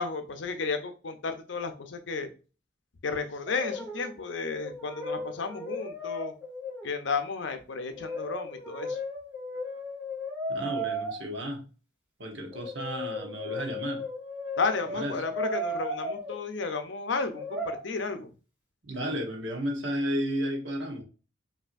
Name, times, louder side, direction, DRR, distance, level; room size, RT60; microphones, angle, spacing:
voice 1, 0.0-2.3 3.0-6.3 6.8-9.0 14.6-18.3, left 4 dB, 70° left, 0.6 m, -33 dB
Brass instrument, 3.5-4.2 4.4-6.9 7.9-11.2 12.5-16.4 17.3-17.8, left 1 dB, 10° right, 1.2 m, -35 dB
voice 2, 10.5-11.6 12.2-14.0 14.9-15.2 18.8-21.0, equal, 70° right, 1.0 m, -33 dB
5.5 x 2.7 x 2.5 m
head